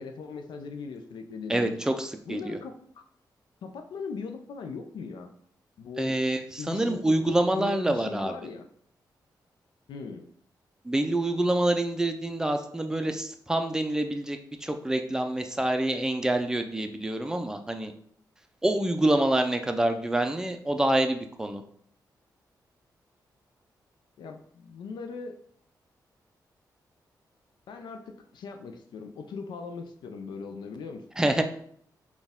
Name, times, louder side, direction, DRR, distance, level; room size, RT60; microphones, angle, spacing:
voice 1, 0.0-1.8 2.3-3.0 3.6-5.3 5.8-6.2 6.6-8.7 9.9-10.3 24.2-25.4 27.7-31.0, left 5 dB, 85° left, 6 dB, 0.4 m, -39 dB
voice 2, 1.5-2.6 6.0-6.4 6.7-8.3 10.9-17.9 18.6-21.6 31.2-31.4, right 1 dB, 10° right, 6 dB, 0.4 m, -26 dB
4.3 x 2.3 x 3.5 m, 0.63 s
cardioid pair, 100°, 8 cm